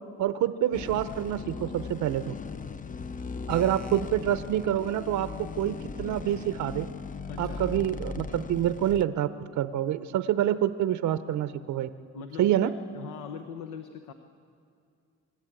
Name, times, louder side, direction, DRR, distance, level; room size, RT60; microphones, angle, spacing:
voice 1, 0.2-2.3 3.5-6.9 7.4-9.3 9.6-11.9 12.4-12.7, right 11 dB, 70° right, 12 dB, 0.7 m, -27 dB
sound 1, 0.7-9.0, left 5 dB, 25° left, 0.5 m, -38 dB
voice 2, 7.3-7.6 12.1-14.1, left 6 dB, 85° left, 7 dB, 1.0 m, -41 dB
25.0 x 11.5 x 8.9 m, 2.5 s
cardioid pair, 90°, 30 cm